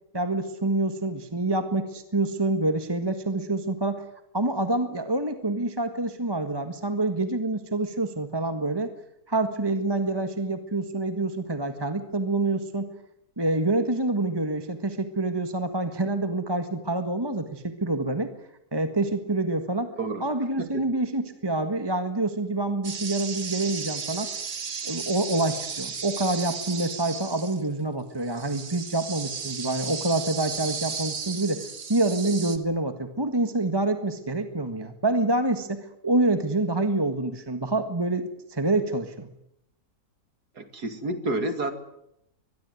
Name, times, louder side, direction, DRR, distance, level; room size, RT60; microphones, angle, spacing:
voice 1, 0.1-4.0 4.3-8.9 9.3-12.9 13.4-18.3 18.7-19.9 20.2-24.3 24.8-31.6 31.9-39.3, right 2 dB, 15° right, 8 dB, 1.6 m, -27 dB
sound 1, 22.8-27.7 28.2-32.6, right 6 dB, 50° right, 1.8 m, -35 dB
voice 2, 40.6-41.7, right 2 dB, 90° right, 9 dB, 3.1 m, -29 dB
24.0 x 21.0 x 9.5 m, 0.79 s
omnidirectional pair, 1.7 m